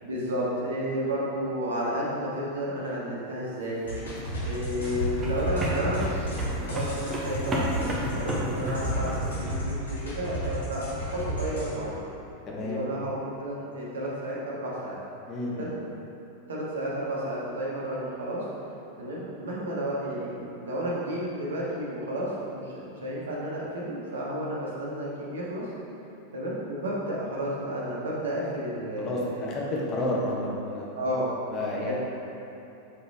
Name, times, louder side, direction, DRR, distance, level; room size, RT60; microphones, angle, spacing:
voice 1, 0.0-3.9 4.4-12.0 12.6-13.1 13.4-15.0 15.6-15.7 16.5-18.4 19.0-25.7 26.3-29.6 31.0-31.3 31.8-31.9, equal, 65° right, -5 dB, 1.3 m, -32 dB
sound 1, 3.8-11.7, equal, 70° left, 1.5 m, -32 dB
sound 2, 3.9-9.6, equal, 20° right, 1.0 m, -33 dB
voice 2, 12.5-12.8 15.3-15.8 29.0-31.0 31.5-31.9, left 1 dB, 30° left, -4 dB, 1.2 m, -31 dB
6.9 x 4.0 x 3.5 m, 2.9 s
figure-of-eight pair, 90°, 0 cm